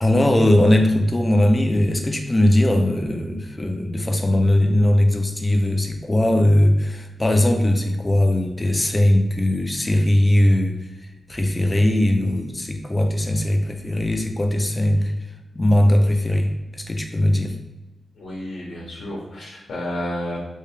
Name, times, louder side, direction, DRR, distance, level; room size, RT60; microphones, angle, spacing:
voice 1, 0.0-10.9 11.3-15.1 15.5-17.6, left 1 dB, 15° left, 3 dB, 0.4 m, -19 dB
voice 2, 18.2-20.4, left 1 dB, 80° left, -5 dB, 0.9 m, -31 dB
3.2 x 2.7 x 3.3 m, 1.1 s
wide cardioid pair, 170°, 0 cm